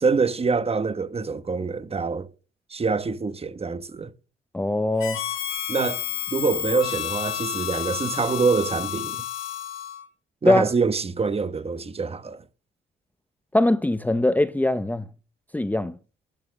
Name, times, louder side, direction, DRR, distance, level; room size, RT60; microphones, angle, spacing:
voice 1, 0.0-2.3 2.7-4.1 5.7-9.2 10.4-12.4, right 4 dB, 30° right, 1.3 m, -25 dB
voice 2, 4.5-5.2 10.5-10.6 13.5-15.0 15.5-16.0, left 1 dB, 10° left, 0.7 m, -21 dB
Harmonica, 5.0-10.0, left 11 dB, 90° left, 3.4 m, -30 dB
11.0 x 9.5 x 6.4 m
cardioid pair, 90°, 20 cm